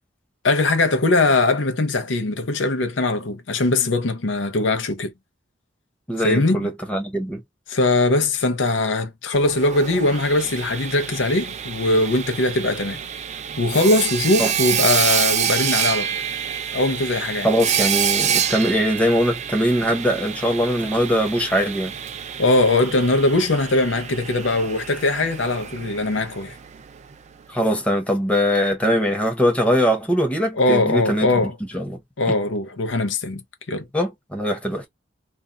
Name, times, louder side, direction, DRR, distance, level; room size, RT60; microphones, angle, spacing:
voice 1, 0.4-5.1 6.2-6.7 7.7-13.0 13.6-16.2 16.7-17.5 22.4-26.5 30.6-31.6 32.2-33.9, left 2 dB, 75° left, 0.7 m, -21 dB
voice 2, 6.1-7.4 14.4-14.5 17.4-21.9 27.5-31.3 31.7-32.0 33.9-34.9, equal, 5° left, 0.9 m, -21 dB
Sawing, 9.3-27.2, right 8 dB, 35° right, 0.4 m, -27 dB
2.5 x 2.2 x 3.8 m
head